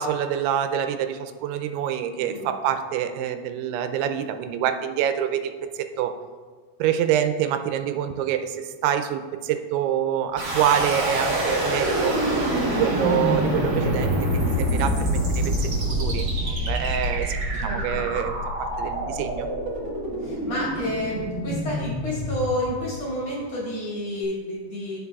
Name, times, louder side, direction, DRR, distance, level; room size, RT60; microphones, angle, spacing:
voice 1, 0.0-6.1 6.8-12.2 12.7-14.2 14.6-19.5, right 9 dB, 90° right, 8 dB, 2.6 m, -26 dB
voice 2, 2.1-2.5 17.6-18.1 20.2-25.0, left 1 dB, 45° left, -7 dB, 2.7 m, -30 dB
sound 1, 10.4-23.3, right 1 dB, 70° right, 0.9 m, -26 dB
13.5 x 5.8 x 2.3 m, 1.5 s
omnidirectional pair, 4.6 m